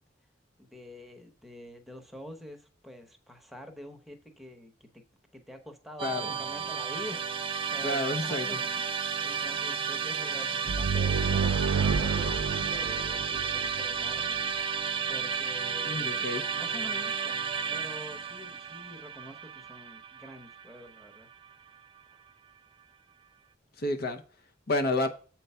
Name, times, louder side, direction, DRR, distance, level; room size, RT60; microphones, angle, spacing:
voice 1, 0.6-4.9 5.3-17.4 17.7-21.3, equal, ahead, 1.0 m, -46 dB
voice 2, 6.0-6.3 7.8-8.6 15.8-16.4 23.8-24.2 24.7-25.1, left 2 dB, 55° left, 0.7 m, -30 dB
Musical instrument, 6.0-21.2, right 6 dB, 30° right, 0.6 m, -32 dB
sound 1, 10.7-14.2, right 5 dB, 90° right, 0.4 m, -29 dB
8.0 x 4.6 x 5.5 m
head